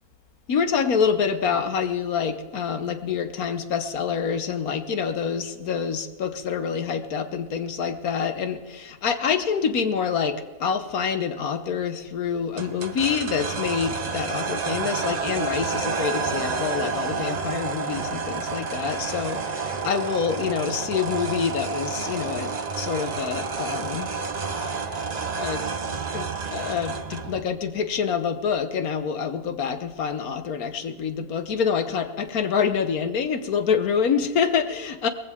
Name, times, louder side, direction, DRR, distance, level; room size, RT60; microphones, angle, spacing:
voice 1, 0.5-24.1 24.7-24.8 25.4-25.6 26.1-35.1, left 6 dB, 70° left, 9 dB, 1.4 m, -26 dB
sound 1, 12.6-27.4, right 5 dB, 35° right, 0.7 m, -30 dB
19.5 x 15.5 x 3.7 m, 1.4 s
omnidirectional pair, 1.6 m